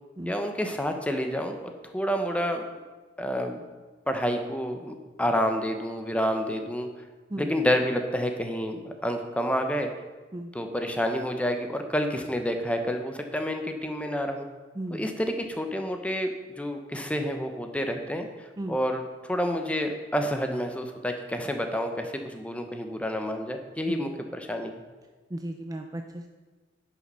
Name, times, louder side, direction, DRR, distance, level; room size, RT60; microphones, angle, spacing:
voice 1, 0.2-1.6 1.8-2.6 3.2-3.6 4.1-6.9 7.4-9.9 10.5-14.5 14.9-24.7, equal, 5° left, 5 dB, 0.8 m, -29 dB
voice 2, 14.8-15.1 18.6-18.8 23.9-24.1 25.3-26.3, right 1 dB, 20° right, 5 dB, 0.5 m, -35 dB
10.0 x 6.0 x 5.6 m, 1.3 s
head